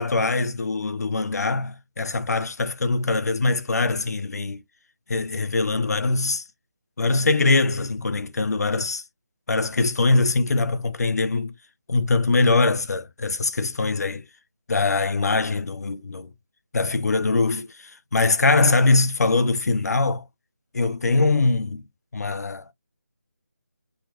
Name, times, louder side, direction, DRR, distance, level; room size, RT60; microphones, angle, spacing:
voice 1, 0.0-4.6 5.1-6.4 7.0-9.0 9.5-11.5 11.9-14.3 14.7-16.3 16.7-20.2 20.7-21.9 22.1-22.7, left 3 dB, 70° left, 0.7 m, -22 dB
4.0 x 3.0 x 2.9 m
figure-of-eight pair, 170°, 9 cm